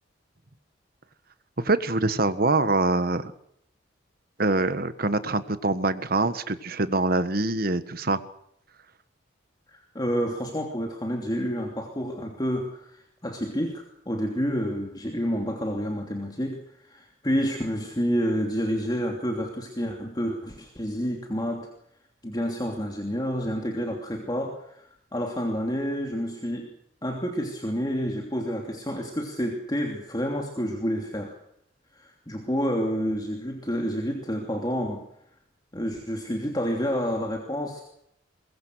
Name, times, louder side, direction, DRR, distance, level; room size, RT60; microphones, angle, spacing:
voice 1, 1.6-3.3 4.4-8.2, right 2 dB, 50° right, 12 dB, 1.5 m, -24 dB
voice 2, 9.7-21.7 22.2-26.7 27.0-31.3 31.9-35.0 35.7-37.8, equal, 20° left, 1 dB, 2.9 m, -29 dB
22.5 x 22.0 x 6.5 m, 0.73 s
head